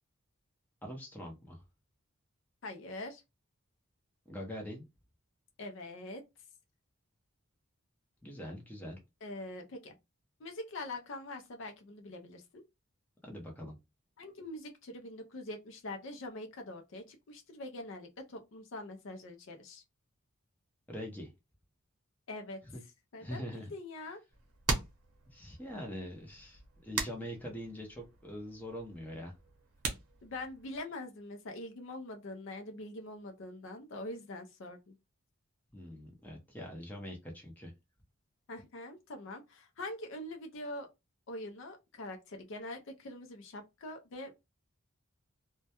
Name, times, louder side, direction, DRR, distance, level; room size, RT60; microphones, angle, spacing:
voice 1, 0.8-1.6 4.3-4.8 8.2-9.0 13.2-13.7 20.9-21.3 22.7-22.8 23.2-23.7 25.3-29.3 35.7-37.7, equal, 10° left, 0.6 m, -43 dB
voice 2, 2.6-3.2 5.6-6.2 9.2-9.9 10.4-12.6 14.2-19.8 22.3-22.6 23.1-23.4 23.7-24.2 30.2-34.9 38.5-40.9 41.3-44.4, left 2 dB, 60° left, 0.4 m, -44 dB
sound 1, 24.3-30.8, right 4 dB, 85° right, 0.7 m, -41 dB
2.1 x 2.1 x 2.8 m
head